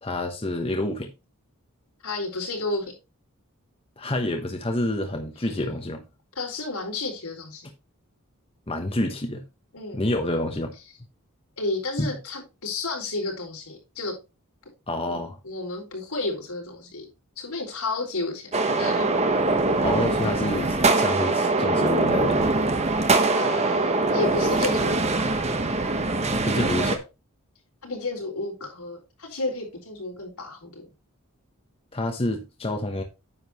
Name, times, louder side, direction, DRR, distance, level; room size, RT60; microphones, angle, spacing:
voice 1, 0.0-1.1 4.0-6.0 8.7-9.4 9.9-10.7 12.0-12.2 14.9-15.4 19.8-22.5 26.3-27.1 31.9-33.0, left 1 dB, 25° left, 1.1 m, -28 dB
voice 2, 2.0-2.9 6.4-7.7 9.7-10.0 11.6-14.1 15.1-15.2 15.4-17.0 17.4-19.1 23.3-25.0 27.8-30.9, left 2 dB, 90° left, 4.6 m, -31 dB
sound 1, 18.5-27.0, right 3 dB, 30° right, 1.1 m, -23 dB
9.7 x 7.7 x 3.0 m
head